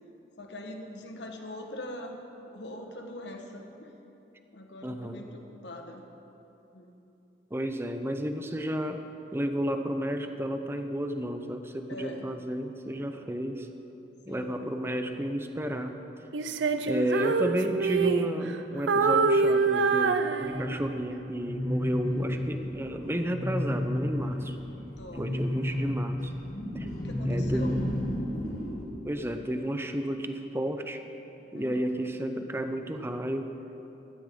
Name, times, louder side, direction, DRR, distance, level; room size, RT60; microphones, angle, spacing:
voice 1, 0.4-2.2 2.5-3.9 4.5-6.0 6.7-6.9 11.9-12.3 14.3-14.5 24.9-25.4 27.0-27.8 31.5-31.8, left 1 dB, 70° left, 3 dB, 1.4 m, -42 dB
voice 2, 4.8-5.2 7.5-9.0 9.3-13.7 14.3-16.0 16.9-24.6 25.1-26.3 26.7-26.9 27.2-27.9 29.0-31.0 31.5-33.5, equal, 15° right, 6 dB, 0.7 m, -32 dB
Female singing, 16.3-18.6 18.9-20.9, right 4 dB, 85° right, 0.5 m, -25 dB
sound 1, 20.4-28.8, left 1 dB, 45° left, 2.7 m, -32 dB
16.5 x 13.5 x 3.8 m, 2.9 s
head